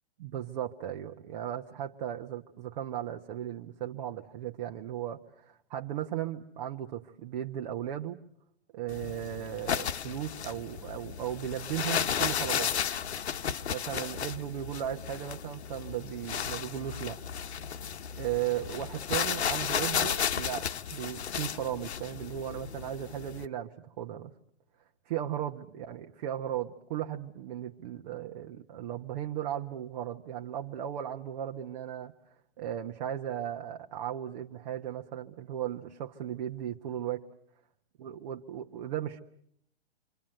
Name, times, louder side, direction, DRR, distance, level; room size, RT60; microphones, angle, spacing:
voice 1, 0.2-8.2 8.7-12.7 13.7-17.2 18.2-24.3 25.1-32.1 32.6-37.2 38.0-39.2, right 11 dB, 40° right, 3 dB, 1.2 m, -36 dB
sound 1, 8.9-23.4, left 8 dB, 75° left, 1.2 m, -34 dB
27.0 x 25.5 x 7.8 m, 0.71 s
hypercardioid pair, 150°, 33 cm